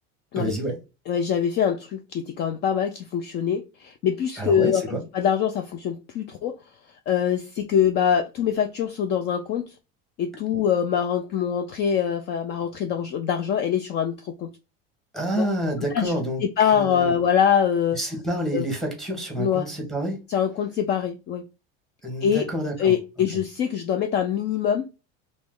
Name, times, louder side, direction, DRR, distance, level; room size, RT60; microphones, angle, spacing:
voice 1, 0.3-0.8 4.4-5.0 15.1-16.4 16.7-17.1 18.0-20.2 22.0-22.9, right 1 dB, ahead, 1.4 m, -28 dB
voice 2, 1.1-6.6 7.1-9.7 10.2-14.5 15.4-15.5 15.9-16.1 16.6-18.0 18.5-18.7 19.4-19.7 20.3-21.5 22.2-22.5 22.8-24.9, left 8 dB, 35° left, 0.4 m, -24 dB
3.1 x 3.1 x 3.7 m
supercardioid pair, 140°, 29 cm